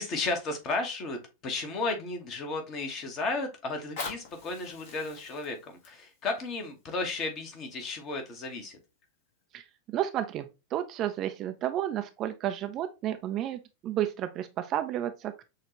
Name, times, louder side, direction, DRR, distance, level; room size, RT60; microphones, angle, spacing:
voice 1, 0.0-8.8, left 3 dB, 35° left, 1.1 m, -34 dB
Fire, 3.7-8.7 9.3-9.4, left 4 dB, 50° left, 1.3 m, -45 dB
voice 2, 9.5-15.5, right 11 dB, 35° right, 0.4 m, -32 dB
6.3 x 2.4 x 2.9 m
figure-of-eight pair, 90°, 0 cm